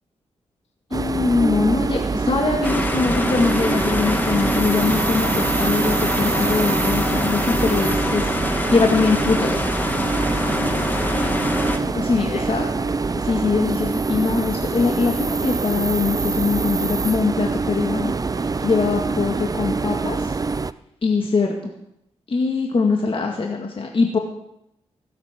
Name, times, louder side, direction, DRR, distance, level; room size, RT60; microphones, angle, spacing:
voice 1, 0.9-9.6 11.9-12.9 13.2-18.1 18.6-20.3 21.0-21.7 22.3-24.2, left 4 dB, 50° left, 1 dB, 1.9 m, -22 dB
sound 1, 0.9-20.7, right 4 dB, 30° right, 0.5 m, -24 dB
sound 2, 2.6-11.8, left 1 dB, 15° left, 1.8 m, -25 dB
voice 2, 10.4-12.6, left 3 dB, 70° left, 2 dB, 2.8 m, -36 dB
15.5 x 8.8 x 6.0 m, 0.82 s
supercardioid pair, 50°, 12 cm